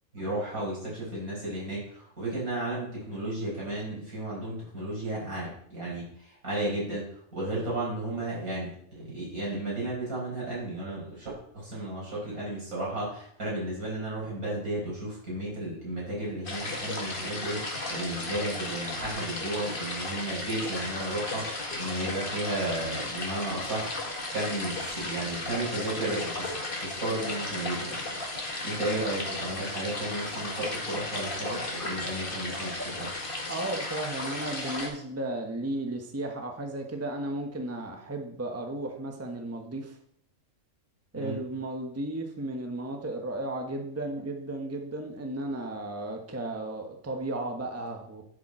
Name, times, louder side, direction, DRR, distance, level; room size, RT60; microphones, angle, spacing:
voice 1, 0.1-7.0 7.3-11.3 11.5-23.9 24.3-26.5 26.8-28.2 28.6-33.1 41.1-41.4, right 1 dB, 80° right, -6 dB, 5.7 m, -33 dB
sound 1, 16.4-34.9, left 2 dB, 40° left, 1.9 m, -35 dB
voice 2, 33.5-40.0 41.1-48.2, right 2 dB, 10° right, 3 dB, 1.1 m, -34 dB
10.5 x 7.4 x 4.4 m, 0.68 s
omnidirectional pair, 1.5 m